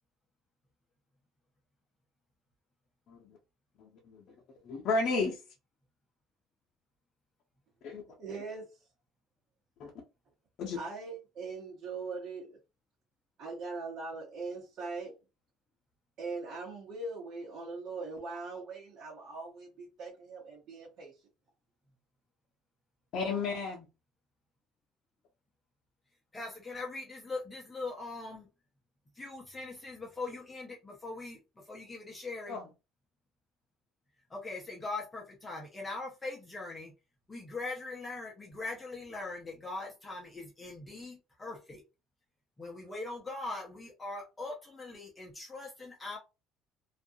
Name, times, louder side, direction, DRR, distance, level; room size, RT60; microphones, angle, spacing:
voice 1, 3.8-4.2 4.6-5.4 7.8-8.0 9.8-9.9 10.6-10.8 23.1-23.9 32.5-32.7, left 3 dB, 55° left, 0.6 m, -33 dB
voice 2, 8.1-8.7 10.7-12.6 13.4-15.1 16.2-21.1, right 3 dB, 55° right, 1.0 m, -41 dB
voice 3, 26.3-28.5 29.1-32.6 34.3-36.9 37.3-41.8 42.6-46.2, left 3 dB, 15° left, 0.6 m, -41 dB
2.4 x 2.3 x 2.7 m
cardioid pair, 120°, 0 cm